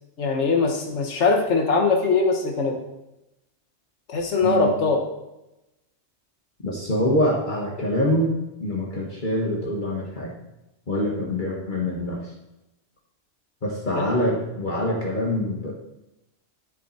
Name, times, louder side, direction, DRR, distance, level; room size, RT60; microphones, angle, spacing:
voice 1, 0.2-2.8 4.1-5.0 13.9-14.1, left 4 dB, 85° left, 2 dB, 1.5 m, -21 dB
voice 2, 4.4-4.8 6.6-10.3 10.9-12.3 13.6-15.7, left 1 dB, 45° left, -3 dB, 1.6 m, -25 dB
12.0 x 7.4 x 4.2 m, 0.94 s
omnidirectional pair, 1.2 m